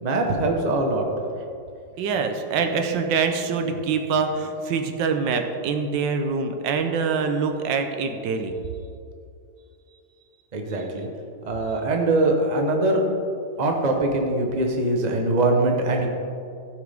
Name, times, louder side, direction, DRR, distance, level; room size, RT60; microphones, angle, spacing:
voice 1, 0.0-1.1 10.5-11.1 11.5-13.0 13.6-16.1, right 2 dB, 30° right, 2 dB, 0.9 m, -22 dB
voice 2, 2.0-8.5, right 5 dB, 85° right, 6 dB, 1.5 m, -25 dB
15.5 x 6.0 x 3.5 m, 2.5 s
omnidirectional pair, 1.9 m